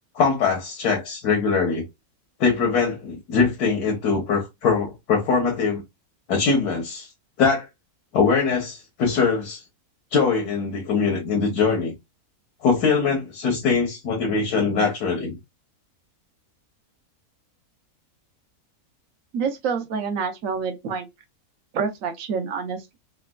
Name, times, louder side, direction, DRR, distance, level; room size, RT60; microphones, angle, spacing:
voice 1, 0.1-1.9 2.4-5.8 6.3-7.1 7.4-7.7 8.1-9.6 10.1-11.9 12.6-15.4, left 5 dB, 85° left, 1.5 m, -22 dB
voice 2, 19.3-21.1 21.7-23.0, right 5 dB, 65° right, 1.1 m, -27 dB
4.0 x 2.2 x 2.2 m
omnidirectional pair, 1.6 m